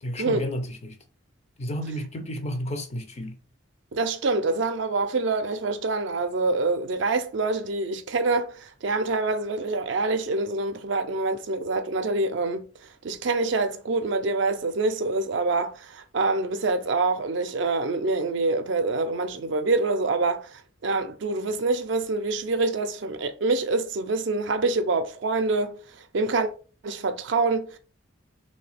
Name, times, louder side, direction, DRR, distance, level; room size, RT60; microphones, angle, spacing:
voice 1, 0.0-1.0 1.6-3.4, equal, 30° left, 0.4 m, -32 dB
voice 2, 3.9-12.7 13.0-25.8 26.1-26.5 26.8-27.8, right 3 dB, 65° right, 0.4 m, -26 dB
3.1 x 2.7 x 3.3 m
head